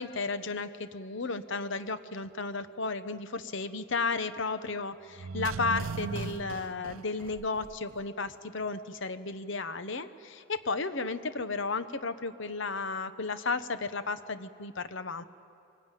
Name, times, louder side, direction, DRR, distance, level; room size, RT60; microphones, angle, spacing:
voice 1, 0.0-15.2, left 4 dB, 60° left, 12 dB, 0.9 m, -33 dB
sound 1, 5.1-8.0 8.3-8.4, right 4 dB, 90° right, 0.6 m, -37 dB
23.0 x 19.0 x 9.1 m, 2.6 s
head